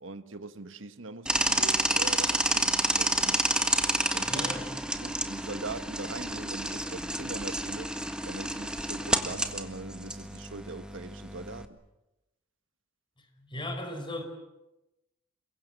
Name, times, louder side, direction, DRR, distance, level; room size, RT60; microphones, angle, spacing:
voice 1, 0.0-3.7 4.1-8.0 8.2-11.8, right 3 dB, 80° right, 1.5 m, -42 dB
sound 1, 1.3-11.7, right 1 dB, 5° right, 1.6 m, -29 dB
voice 2, 4.2-4.7 13.4-14.2, left 1 dB, 25° left, 5.2 m, -37 dB
28.0 x 23.0 x 7.7 m
head